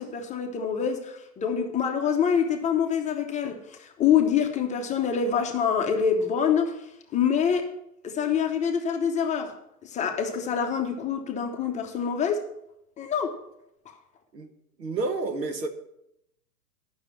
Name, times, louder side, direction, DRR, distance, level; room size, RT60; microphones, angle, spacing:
voice 1, 0.0-6.8 7.1-7.7 8.0-9.5 9.8-12.5 13.0-13.4, left 7 dB, 15° left, 0.8 m, -26 dB
voice 2, 14.8-15.7, right 3 dB, 90° right, 1.4 m, -29 dB
9.2 x 6.1 x 7.1 m
hypercardioid pair, 120°, 48 cm